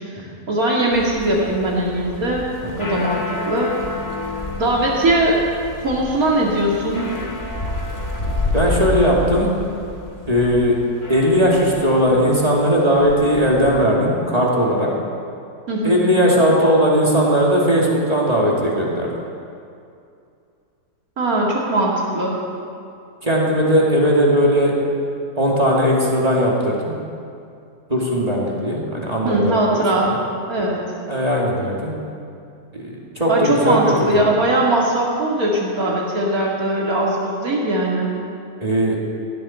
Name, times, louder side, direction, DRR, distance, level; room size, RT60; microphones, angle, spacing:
voice 1, 0.0-2.5 2.8-3.7 4.6-5.4 5.8-7.1 15.7-16.0 21.2-22.4 29.2-30.2 30.5-30.8 33.3-38.2, right 1 dB, 70° right, -4 dB, 2.8 m, -20 dB
sound 1, 0.9-13.8, left 2 dB, 40° left, 2.2 m, -29 dB
voice 2, 8.5-9.5 10.3-10.7 11.1-14.9 15.8-19.1 23.2-24.7 25.4-26.9 27.9-30.1 31.1-31.9 32.7-34.2 38.6-39.0, equal, 25° right, -4 dB, 2.7 m, -18 dB
18.5 x 17.0 x 4.4 m, 2.5 s
omnidirectional pair, 1.6 m